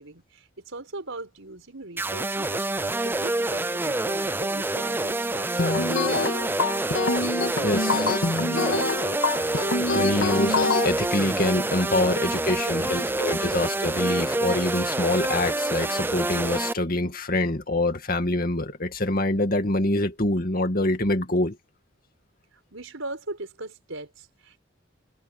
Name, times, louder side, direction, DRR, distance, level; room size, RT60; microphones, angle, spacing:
voice 1, 0.0-6.1 22.7-24.6, right 2 dB, 75° right, 4.9 m, -40 dB
sound 1, 2.0-16.7, right 2 dB, 10° right, 0.5 m, -27 dB
sound 2, 5.6-10.9, left 3 dB, 70° left, 1.9 m, -25 dB
voice 2, 7.6-8.1 9.9-21.6, left 1 dB, 45° left, 2.3 m, -25 dB
head